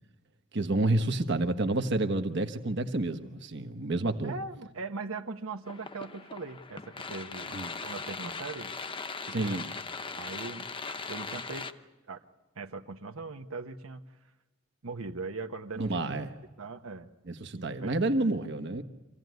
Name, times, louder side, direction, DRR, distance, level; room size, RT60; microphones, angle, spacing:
voice 1, 0.5-4.3 7.5-7.7 9.3-9.7 15.8-16.3 17.3-18.8, right 2 dB, 55° right, 7 dB, 1.3 m, -29 dB
voice 2, 4.2-8.7 9.3-9.6 10.2-10.7 11.1-11.7 12.1-12.2 12.5-14.0 14.8-16.0 16.6-17.1 17.5-17.9, right 3 dB, 80° right, 4 dB, 1.1 m, -40 dB
sound 1, 5.7-11.7, left 4 dB, 25° left, 0.8 m, -39 dB
26.0 x 16.0 x 9.4 m, 1.2 s
head